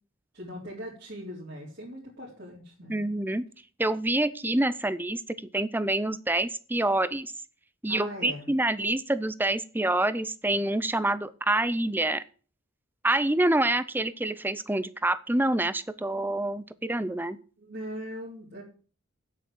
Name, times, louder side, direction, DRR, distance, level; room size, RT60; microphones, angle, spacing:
voice 1, 0.3-3.1 7.9-8.5 17.6-18.6, equal, 50° right, -6 dB, 3.8 m, -40 dB
voice 2, 2.9-3.5 3.8-5.2 5.5-7.3 7.8-12.2 13.0-17.4, right 1 dB, 10° right, 15 dB, 0.6 m, -27 dB
8.8 x 8.3 x 7.6 m, 0.40 s
head